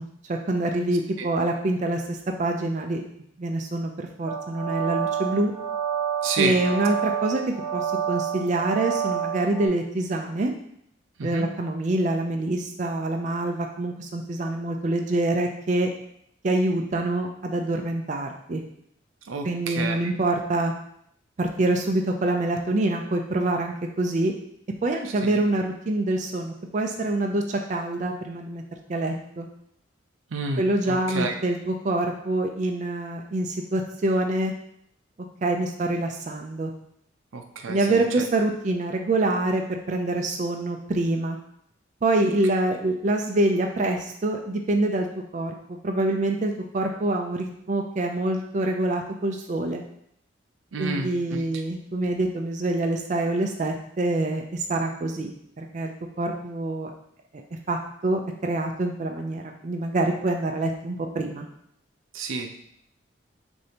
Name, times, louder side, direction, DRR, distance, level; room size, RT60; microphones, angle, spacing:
voice 1, 0.0-3.0 3.4-5.5 6.4-7.4 7.7-10.5 11.2-15.9 16.4-18.6 19.4-20.7 21.4-24.3 24.8-28.6 28.9-29.5 30.6-34.5 35.4-36.7 37.7-41.4 42.0-45.1 45.3-45.5 45.8-49.8 50.8-55.9 56.2-56.9 57.7-61.5, right 2 dB, 40° right, 3 dB, 0.4 m, -26 dB
sound 1, 4.3-9.7, right 8 dB, 15° right, 0.9 m, -29 dB
voice 2, 6.2-6.6 11.2-11.5 19.3-20.1 25.3-25.4 30.3-31.3 37.3-38.0 50.7-51.4 62.1-62.6, right 4 dB, 85° right, 4 dB, 0.5 m, -30 dB
6.4 x 2.6 x 2.8 m, 0.71 s
head